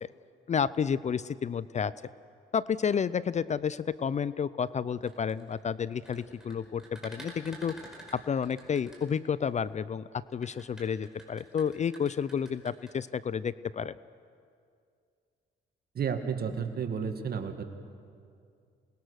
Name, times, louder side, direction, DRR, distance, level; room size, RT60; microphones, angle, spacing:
voice 1, 0.5-1.9 2.5-7.8 8.1-10.0 10.3-14.0, left 7 dB, 35° left, 18 dB, 0.5 m, -31 dB
sound 1, 4.9-9.6 10.3-12.9, right 1 dB, 5° right, 5.2 m, -49 dB
voice 2, 15.9-17.6, right 6 dB, 50° right, 6 dB, 2.0 m, -32 dB
28.0 x 20.0 x 6.5 m, 2.3 s
cardioid pair, 90°, 20 cm